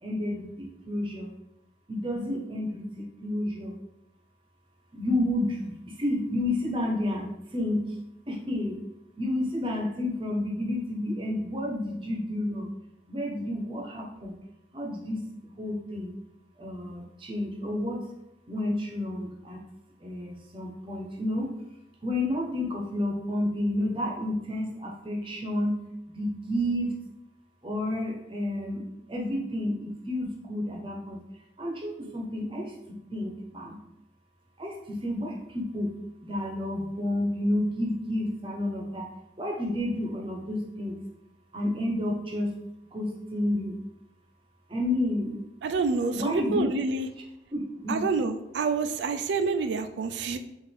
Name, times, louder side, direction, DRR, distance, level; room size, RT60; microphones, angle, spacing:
voice 1, 0.0-1.3 1.9-3.8 4.9-7.8 8.3-8.8 9.2-12.7 13.1-14.4 14.7-15.2 15.6-16.1 16.6-18.0 18.5-19.6 20.0-21.5 22.0-25.8 26.1-27.0 27.6-28.8 29.1-31.2 31.6-32.7 33.1-33.8 34.6-35.9 36.2-39.1 39.4-41.0 41.5-42.5 42.9-43.8 44.7-45.4 46.1-46.7 47.5-48.0, left 1 dB, 30° right, 0 dB, 0.8 m, -30 dB
voice 2, 45.6-47.1 47.9-50.4, right 4 dB, 90° right, 8 dB, 0.4 m, -27 dB
6.3 x 2.6 x 3.3 m, 0.87 s
head